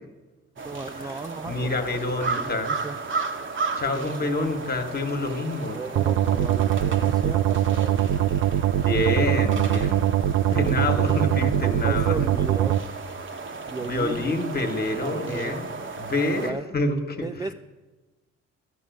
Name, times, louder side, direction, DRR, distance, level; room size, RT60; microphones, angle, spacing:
voice 1, 0.6-3.0 3.8-4.1 5.7-8.3 11.8-12.8 13.7-14.3 15.0-15.6 16.4-16.7 17.2-17.5, right 4 dB, 15° right, 9 dB, 0.3 m, -35 dB
sound 1, 0.6-16.5, right 4 dB, 40° right, 1.1 m, -35 dB
voice 2, 1.5-2.7 3.8-5.8 8.8-10.0 10.5-12.3 13.8-15.7 16.0-17.3, left 2 dB, 30° left, 5 dB, 1.5 m, -27 dB
sound 2, 6.0-12.8, right 11 dB, 75° right, 0.6 m, -22 dB
12.5 x 6.0 x 9.2 m, 1.2 s
cardioid pair, 90°, 30 cm